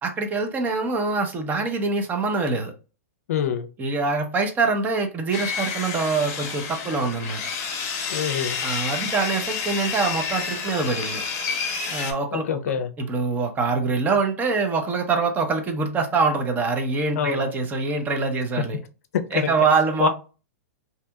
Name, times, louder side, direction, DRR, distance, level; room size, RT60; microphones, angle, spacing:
voice 1, 0.0-2.7 3.8-7.5 8.6-11.2 11.9-12.6 13.0-18.8 19.3-20.1, right 4 dB, 20° right, 0.6 m, -24 dB
voice 2, 3.3-3.7 8.1-8.6 12.3-12.9 17.2-17.5 19.3-19.5 20.0-20.1, left 8 dB, 75° left, 0.5 m, -25 dB
Sawing, 5.3-12.1, left 6 dB, 40° left, 0.8 m, -29 dB
2.7 x 2.6 x 2.2 m
hypercardioid pair, 125°, 8 cm